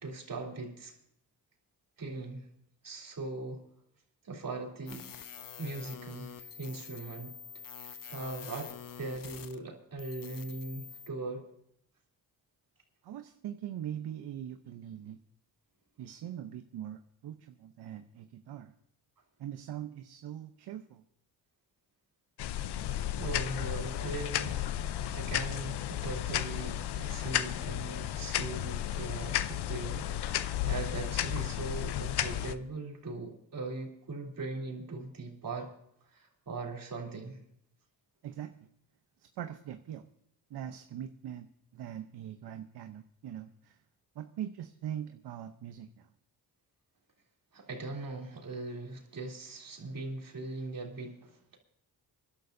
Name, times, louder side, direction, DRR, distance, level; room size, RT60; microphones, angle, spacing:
voice 1, 0.0-0.9 2.0-2.5 2.8-3.6 4.2-5.1 5.6-7.4 7.8-11.5 23.1-35.7 36.1-37.4 47.5-51.6, right 3 dB, 55° right, 0 dB, 3.3 m, -40 dB
sound 1, 4.9-9.6 10.0-11.1, left 7 dB, 55° left, 1.0 m, -46 dB
voice 2, 13.0-15.2 16.0-18.7 19.4-21.0 38.2-38.5 39.4-40.0 40.5-41.5 41.7-43.8 44.2-46.1, right 10 dB, 75° right, 8 dB, 0.8 m, -42 dB
sound 2, 22.4-32.5, left 11 dB, 80° left, 0.7 m, -33 dB
26.5 x 11.5 x 2.7 m, 0.74 s
cardioid pair, 75°, 40 cm